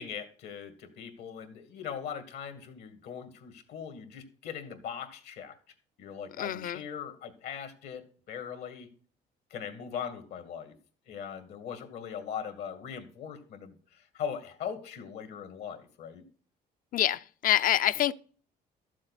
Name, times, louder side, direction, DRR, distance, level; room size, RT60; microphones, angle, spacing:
voice 1, 0.0-5.6 6.0-8.9 9.5-10.7 11.1-16.2, left 7 dB, 75° left, 2.3 m, -40 dB
voice 2, 6.4-6.8 16.9-18.1, left 12 dB, 55° left, 0.6 m, -26 dB
13.0 x 7.5 x 4.1 m
cardioid pair, 110°, 17 cm